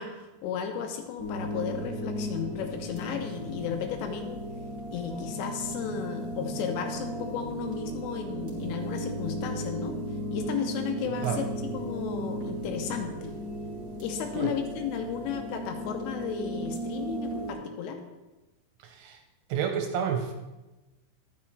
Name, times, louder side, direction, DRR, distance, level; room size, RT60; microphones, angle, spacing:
voice 1, 0.0-4.4 4.9-10.0 10.3-11.5 11.7-13.3 14.0-18.0, left 8 dB, 80° left, 5 dB, 3.1 m, -34 dB
sound 1, 1.2-17.5, right 1 dB, 20° right, 3.2 m, -35 dB
voice 2, 18.8-19.2 19.5-20.3, right 8 dB, 80° right, 4 dB, 3.0 m, -30 dB
11.0 x 9.7 x 3.2 m, 1.1 s
omnidirectional pair, 5.9 m